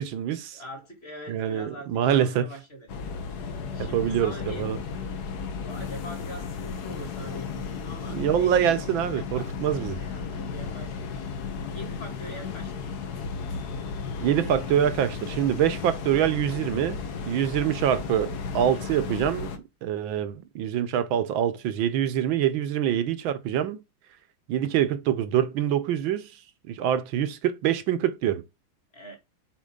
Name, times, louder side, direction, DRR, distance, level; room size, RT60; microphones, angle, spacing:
voice 1, 0.0-0.6 1.3-2.5 3.8-4.8 8.1-10.0 14.2-19.5 19.8-23.8 24.5-26.3 26.7-28.4, right 10 dB, 75° right, 1.5 m, -25 dB
voice 2, 0.5-2.9 3.7-4.7 5.6-8.8 9.2-11.1 11.7-12.9 28.9-29.2, equal, 30° left, 2.2 m, -43 dB
sound 1, 2.9-19.6, left 5 dB, 55° left, 1.4 m, -34 dB
7.6 x 4.4 x 3.7 m
omnidirectional pair, 2.3 m